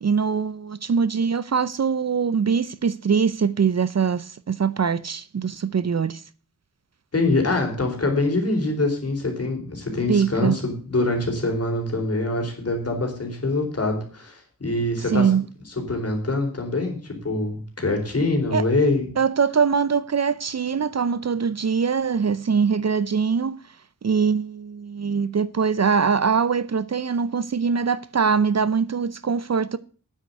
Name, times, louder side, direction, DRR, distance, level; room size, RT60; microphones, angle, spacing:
voice 1, 0.0-6.2 10.1-10.6 15.1-15.4 18.5-18.6 19.2-23.6 24.0-29.8, right 6 dB, 50° right, 0.7 m, -22 dB
voice 2, 7.1-15.3 15.9-19.0, left 2 dB, 45° left, 4.0 m, -24 dB
9.3 x 8.1 x 8.3 m
wide cardioid pair, 85°, 34 cm